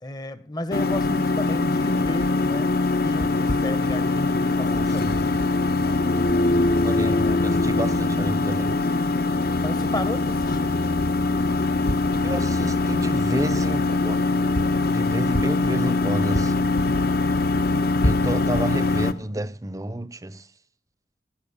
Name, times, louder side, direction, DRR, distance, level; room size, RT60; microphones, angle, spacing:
voice 1, 0.0-2.7 3.0-5.5 6.9-7.4 9.6-10.8, left 1 dB, 20° left, 1.0 m, -33 dB
sound 1, 0.7-19.1, left 3 dB, 55° left, 1.1 m, -22 dB
voice 2, 4.6-5.2 6.8-8.7 12.2-14.2 14.9-16.8 18.0-20.5, right 1 dB, 20° right, 0.7 m, -31 dB
16.0 x 10.5 x 7.0 m
head